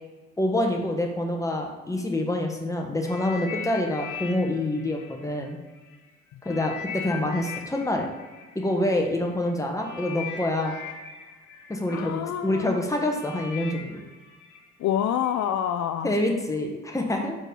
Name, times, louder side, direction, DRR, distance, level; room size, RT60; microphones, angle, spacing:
voice 1, 0.4-5.6 6.4-8.1 8.5-10.8 11.7-14.0 16.0-17.3, left 1 dB, 10° left, 1 dB, 1.1 m, -26 dB
sound 1, 3.0-6.0 6.4-15.4 16.1-16.3, left 6 dB, 85° left, 1.3 m, -40 dB
voice 2, 11.9-12.7 14.8-16.2, left 10 dB, 65° left, 9 dB, 0.4 m, -27 dB
4.5 x 4.3 x 5.4 m, 1.3 s
cardioid pair, 90°, 30 cm